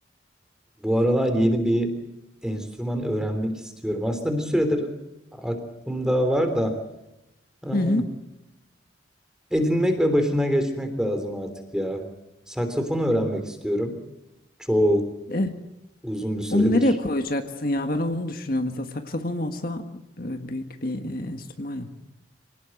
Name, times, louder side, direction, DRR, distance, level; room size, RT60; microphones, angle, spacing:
voice 1, 0.8-1.9 2.4-4.9 5.3-6.8 7.6-8.0 9.5-12.1 12.5-14.0 14.6-15.1 16.0-16.8, equal, 5° right, 7 dB, 3.3 m, -24 dB
voice 2, 7.7-8.1 15.3-15.5 16.5-19.9 20.2-21.9, left 1 dB, 50° left, 6 dB, 1.7 m, -26 dB
26.0 x 18.5 x 7.8 m, 0.89 s
head